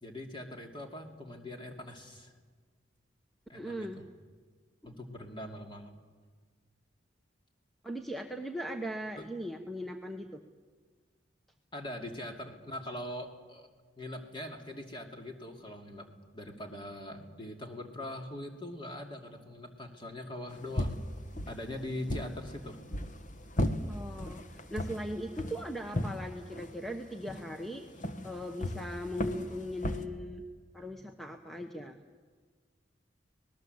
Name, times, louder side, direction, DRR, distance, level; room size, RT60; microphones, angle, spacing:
voice 1, 0.0-2.3 3.5-4.1 4.8-6.0 9.2-9.3 11.7-13.7 14.0-16.1 16.3-21.0 21.5-22.8, left 1 dB, 25° left, 3 dB, 2.6 m, -42 dB
voice 2, 3.5-4.0 4.8-5.0 7.8-10.4 23.9-30.4 30.7-32.0, equal, ahead, 4 dB, 1.0 m, -39 dB
sound 1, 20.5-30.0, left 1 dB, 40° left, 1.3 m, -37 dB
25.5 x 19.5 x 7.9 m, 1.5 s
head